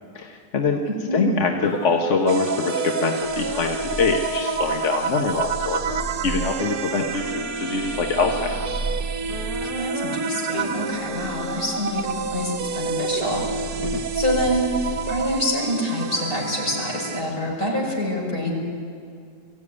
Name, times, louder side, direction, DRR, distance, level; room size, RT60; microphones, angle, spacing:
voice 1, 0.1-0.8 1.1-5.8 6.2-8.8 13.8-14.0, left 4 dB, 50° left, 3 dB, 1.4 m, -24 dB
voice 2, 0.8-1.5 9.6-13.6 13.9-14.7 15.1-18.6, left 1 dB, 65° left, -3 dB, 6.0 m, -26 dB
sound 1, 1.6-11.8, equal, 20° right, 1.5 m, -35 dB
sound 2, 2.3-17.2, right 5 dB, 65° right, 1.3 m, -29 dB
Purr, 3.2-9.7 10.4-15.6, right 3 dB, 80° left, 8.2 m, -35 dB
23.0 x 15.5 x 9.7 m, 2.2 s
omnidirectional pair, 1.7 m